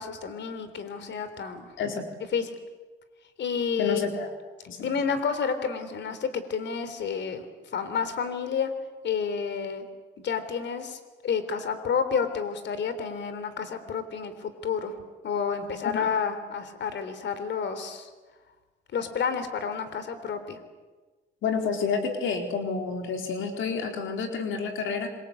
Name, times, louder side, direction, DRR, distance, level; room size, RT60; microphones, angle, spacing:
voice 1, 0.0-1.7 2.3-2.5 3.4-4.1 4.8-7.5 7.7-8.7 9.0-9.9 10.2-14.9 15.2-18.1 18.9-20.6, left 6 dB, 65° left, 11 dB, 3.6 m, -30 dB
voice 2, 1.8-2.1 3.8-4.3 4.7-4.9 15.8-16.1 21.4-25.1, left 5 dB, 80° left, 4 dB, 4.4 m, -29 dB
27.0 x 24.5 x 8.5 m, 1.3 s
cardioid pair, 90°, 20 cm